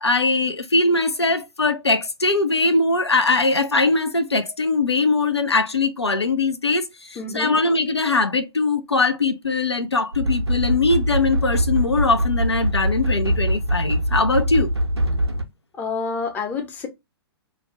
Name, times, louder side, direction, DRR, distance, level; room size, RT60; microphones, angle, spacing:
voice 1, 0.0-14.7, left 3 dB, 85° left, 0.4 m, -21 dB
voice 2, 7.2-7.6 15.8-16.9, left 5 dB, 15° left, 0.5 m, -28 dB
sound 1, 10.1-15.4, equal, 85° right, 0.6 m, -23 dB
2.4 x 2.0 x 3.3 m
figure-of-eight pair, 115°, 14 cm